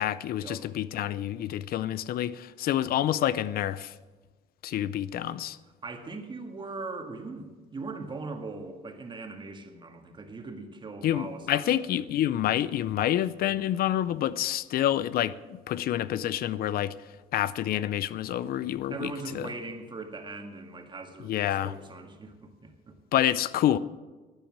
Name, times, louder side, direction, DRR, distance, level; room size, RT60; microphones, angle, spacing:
voice 1, 0.0-3.9 4.6-5.6 11.0-17.0 17.3-19.5 21.2-21.7 23.1-23.8, left 12 dB, 60° left, 0.6 m, -28 dB
voice 2, 5.8-12.2 18.9-21.3 21.6-23.0, right 3 dB, 30° right, 1.9 m, -40 dB
12.5 x 8.9 x 7.4 m
cardioid pair, 110°, 17 cm